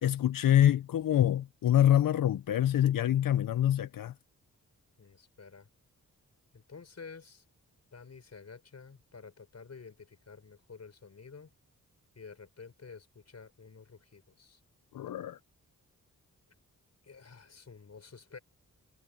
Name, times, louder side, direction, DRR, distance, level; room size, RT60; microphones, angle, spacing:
voice 1, 0.0-4.1 14.9-15.4, left 11 dB, 80° left, 0.6 m, -25 dB
voice 2, 5.0-5.7 6.5-7.4 7.9-11.5 12.2-14.6 17.0-18.4, left 5 dB, 50° left, 5.7 m, -50 dB
wide cardioid pair, 100°, 33 cm